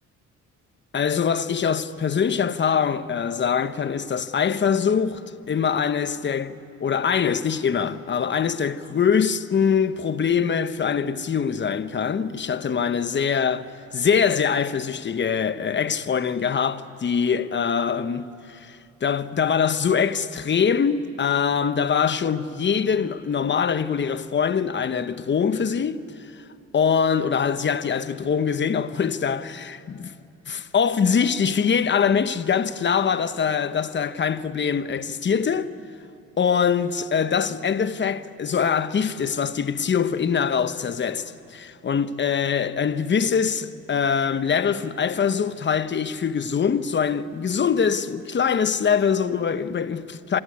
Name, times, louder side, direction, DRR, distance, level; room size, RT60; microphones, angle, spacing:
voice 1, 0.9-5.2 5.5-6.5 6.8-13.7 13.9-26.0 26.7-30.2 30.5-35.7 36.4-50.4, left 7 dB, 40° left, 1.0 m, -23 dB
25.5 x 18.5 x 9.7 m
cardioid pair, 90°, 30 cm